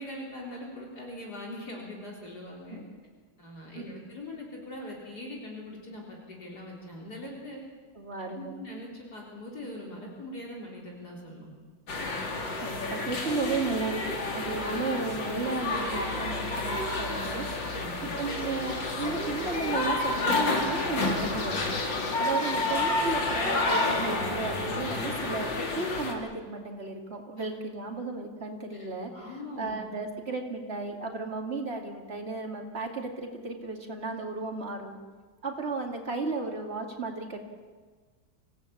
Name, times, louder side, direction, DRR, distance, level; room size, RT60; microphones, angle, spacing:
voice 1, 0.0-2.8 3.4-7.6 8.1-11.5 17.7-18.1 27.4-27.5 28.8-29.8, left 1 dB, 55° left, -2 dB, 4.3 m, -42 dB
voice 2, 8.0-8.5 12.6-17.7 18.0-21.7 22.2-29.3 29.6-35.0 35.4-37.4, right 3 dB, 35° right, 2 dB, 2.7 m, -34 dB
sound 1, 11.9-26.1, left 2 dB, 80° left, 3.3 m, -30 dB
26.5 x 16.5 x 8.7 m, 1.5 s
omnidirectional pair, 2.0 m